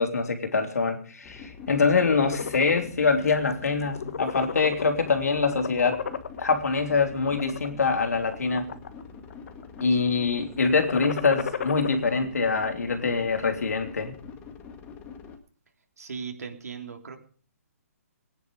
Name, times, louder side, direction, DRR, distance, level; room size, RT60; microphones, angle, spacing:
voice 1, 0.0-6.0 6.4-8.7 9.8-14.2, left 4 dB, 85° left, 6 dB, 3.3 m, -24 dB
sound 1, 1.2-15.4, left 5 dB, 20° left, 1.8 m, -45 dB
sound 2, 1.9-2.8 3.3-3.5 3.8-5.1 5.4-6.6 7.2-7.7 8.3-9.0 9.3-9.8 10.7-12.0, left 7 dB, 65° left, 1.4 m, -33 dB
voice 2, 9.9-10.2 16.0-17.2, right 5 dB, 80° right, 3 dB, 3.6 m, -38 dB
19.5 x 10.0 x 5.3 m, 0.43 s
hypercardioid pair, 160°, 8 cm